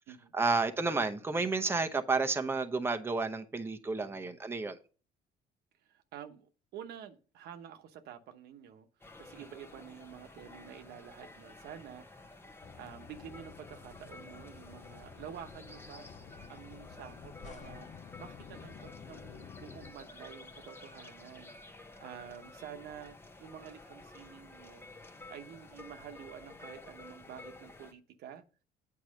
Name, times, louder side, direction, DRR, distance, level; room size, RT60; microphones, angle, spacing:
voice 1, 0.3-4.8, right 3 dB, 15° right, 0.8 m, -31 dB
voice 2, 5.8-8.9 9.2-12.0 12.8-16.1 16.5-24.9 25.3-28.4, right 9 dB, 75° right, 1.0 m, -49 dB
sound 1, 9.0-27.9, left 2 dB, 15° left, 0.9 m, -52 dB
sound 2, 12.6-19.9, left 7 dB, 45° left, 0.7 m, -51 dB
8.6 x 4.7 x 6.4 m
cardioid pair, 110°, 17 cm